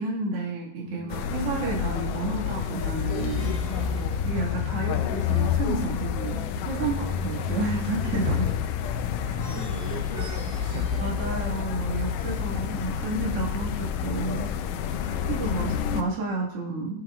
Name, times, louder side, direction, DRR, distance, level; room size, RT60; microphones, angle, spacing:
voice 1, 0.0-3.5 4.2-8.3 11.0-14.6 15.1-17.0, right 3 dB, 45° right, -3 dB, 2.2 m, -31 dB
voice 2, 0.8-1.3 3.6-4.4 6.7-7.5 8.2-8.5 9.3-11.1 15.1-15.4, right 6 dB, 80° right, 0 dB, 2.6 m, -39 dB
sound 1, 1.1-16.0, left 8 dB, 90° left, 1.8 m, -28 dB
Plucked string instrument, 3.1-5.2 9.4-12.0, left 1 dB, 25° left, 1.2 m, -46 dB
17.5 x 6.4 x 2.4 m, 0.83 s
omnidirectional pair, 4.4 m